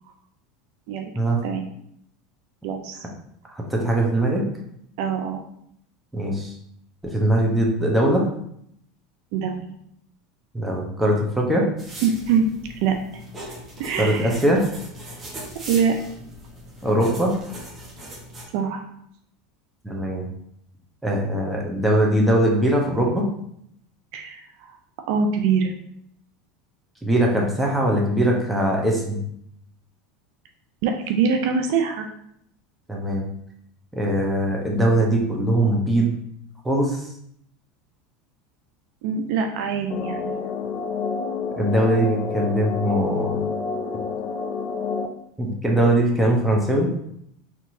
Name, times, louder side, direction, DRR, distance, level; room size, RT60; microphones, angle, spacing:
voice 1, 2.6-3.0 5.0-5.4 9.3-9.7 12.0-12.5 12.8-13.0 13.8-14.4 15.6-16.0 18.5-18.8 24.1-24.4 25.1-25.7 30.8-32.1 39.0-40.3, right 6 dB, 65° right, 4 dB, 0.4 m, -23 dB
voice 2, 3.5-4.4 6.1-6.6 7.0-8.3 10.5-11.7 14.0-14.7 16.8-17.3 19.8-20.3 21.0-23.3 27.0-29.2 32.9-33.3 33.9-36.2 36.6-37.1 41.6-43.4 45.4-46.9, right 1 dB, 5° right, -1 dB, 0.9 m, -21 dB
sound 1, 11.8-18.4, equal, 25° right, 1.2 m, -39 dB
sound 2, 39.9-45.1, left 5 dB, 45° left, 0.4 m, -28 dB
4.1 x 2.9 x 2.7 m, 0.72 s
hypercardioid pair, 85°, 0 cm